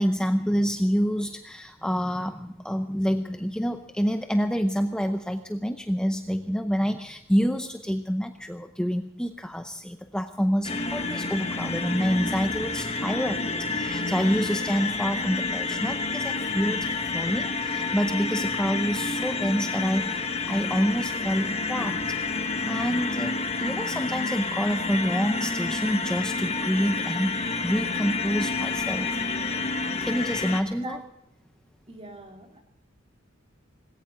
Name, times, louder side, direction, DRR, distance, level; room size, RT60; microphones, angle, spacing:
voice 1, 0.0-22.2 22.6-29.2 30.0-31.0, equal, 5° left, 6 dB, 0.7 m, -27 dB
sound 1, 10.6-30.6, left 3 dB, 30° left, 1.6 m, -29 dB
voice 2, 30.7-31.0 31.9-32.6, right 1 dB, 30° right, 2 dB, 3.1 m, -42 dB
19.5 x 17.5 x 3.8 m, 0.81 s
head